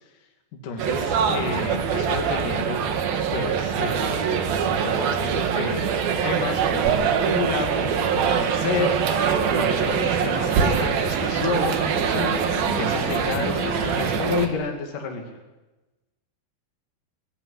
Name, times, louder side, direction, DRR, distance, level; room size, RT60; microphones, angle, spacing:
voice 1, 0.6-2.8 3.3-4.4 4.7-5.9 6.2-12.4 12.8-15.4, left 4 dB, 55° left, 2 dB, 3.8 m, -30 dB
sound 1, 0.8-14.5, right 7 dB, 65° right, 3.4 m, -23 dB
sound 2, 9.1-14.2, equal, 5° right, 2.1 m, -35 dB
voice 2, 12.5-12.9 13.4-14.0, left 2 dB, 75° left, 3 dB, 7.1 m, -34 dB
25.5 x 18.5 x 9.8 m, 1.1 s
omnidirectional pair, 4.7 m